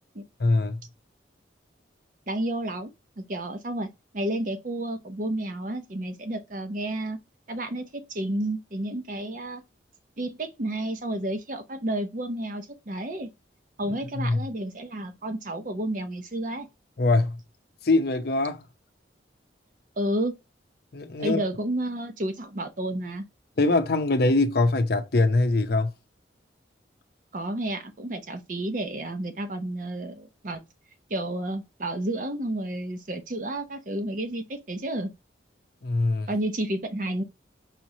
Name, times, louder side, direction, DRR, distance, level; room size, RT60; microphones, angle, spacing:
voice 1, 0.4-0.8 14.2-14.4 17.0-17.4 17.8-18.6 20.9-21.4 23.6-25.9 35.8-36.3, left 2 dB, 55° left, 0.6 m, -23 dB
voice 2, 2.3-2.9 3.2-3.9 4.1-7.2 7.5-9.6 10.2-13.3 13.8-16.7 20.0-20.3 21.2-23.2 27.3-30.6 31.1-35.1 36.3-37.2, right 1 dB, 45° right, 0.7 m, -31 dB
4.9 x 3.0 x 2.7 m
head